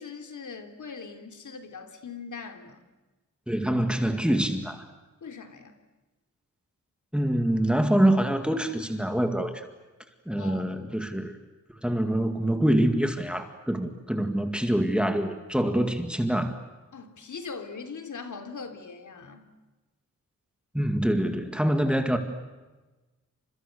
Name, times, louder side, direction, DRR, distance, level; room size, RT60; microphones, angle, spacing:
voice 1, 0.0-2.8 5.2-5.8 10.4-10.6 11.9-12.0 16.9-19.5, left 5 dB, 80° left, 6 dB, 3.3 m, -41 dB
voice 2, 3.5-4.9 7.1-9.6 10.3-11.3 11.8-16.6 20.7-22.2, right 1 dB, 5° right, 6 dB, 2.2 m, -25 dB
29.5 x 27.0 x 6.8 m, 1.2 s
wide cardioid pair, 135°, 30 cm